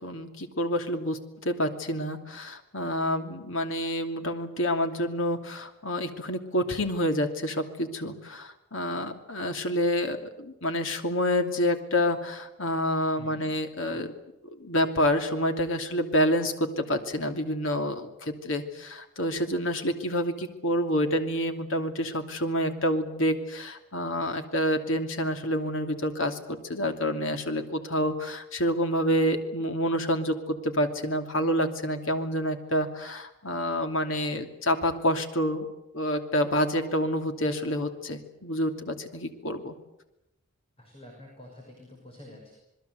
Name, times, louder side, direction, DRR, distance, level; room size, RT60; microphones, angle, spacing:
voice 1, 0.0-14.1 14.6-35.6 35.9-39.7, equal, 65° left, 6 dB, 2.9 m, -28 dB
voice 2, 13.2-13.5 40.8-42.5, left 1 dB, 30° left, 0 dB, 6.3 m, -48 dB
27.5 x 21.0 x 8.1 m, 0.90 s
head